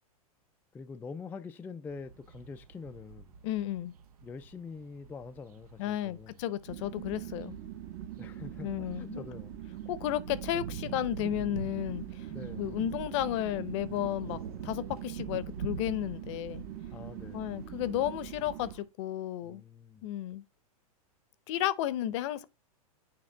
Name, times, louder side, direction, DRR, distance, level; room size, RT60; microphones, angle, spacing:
voice 1, 0.7-3.4 4.2-6.4 8.2-9.5 12.3-12.7 16.9-17.6 19.4-20.1, left 5 dB, 10° left, 0.3 m, -45 dB
sound 1, 1.9-18.8, right 7 dB, 80° right, 0.7 m, -46 dB
voice 2, 3.4-3.9 5.8-7.6 8.6-9.2 9.9-12.3 12.6-16.6 17.3-19.6 20.0-20.4 21.5-22.4, left 12 dB, 50° left, 0.7 m, -33 dB
sound 2, 6.7-18.7, right 11 dB, 45° right, 0.9 m, -43 dB
8.9 x 3.4 x 3.4 m
hypercardioid pair, 110°, 19 cm